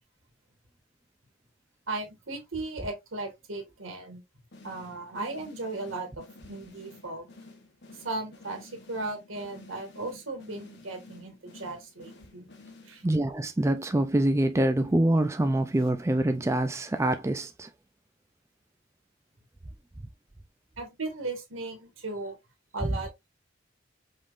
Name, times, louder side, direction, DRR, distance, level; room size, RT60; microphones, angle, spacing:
voice 1, 1.9-4.2 4.6-7.3 8.0-12.5 12.8-13.0 20.8-22.4 22.7-23.1, right 2 dB, 80° right, 2.0 m, -36 dB
sound 1, 4.5-13.3, left 2 dB, 60° left, 1.2 m, -52 dB
voice 2, 13.0-17.7 22.8-22.9, right 1 dB, 15° right, 0.4 m, -25 dB
5.3 x 3.6 x 2.5 m
head